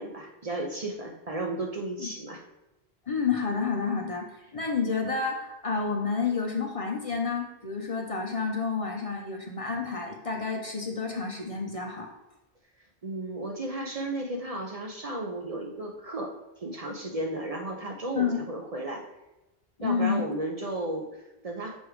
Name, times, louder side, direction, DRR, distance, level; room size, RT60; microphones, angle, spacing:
voice 1, 0.0-2.4 13.0-16.3 16.6-19.0 19.8-21.8, right 1 dB, 45° right, 1 dB, 0.6 m, -34 dB
voice 2, 3.1-12.1 18.2-18.4 19.8-20.3, left 5 dB, 40° left, 1 dB, 0.7 m, -29 dB
6.2 x 3.4 x 4.7 m, 1.0 s
omnidirectional pair, 1.0 m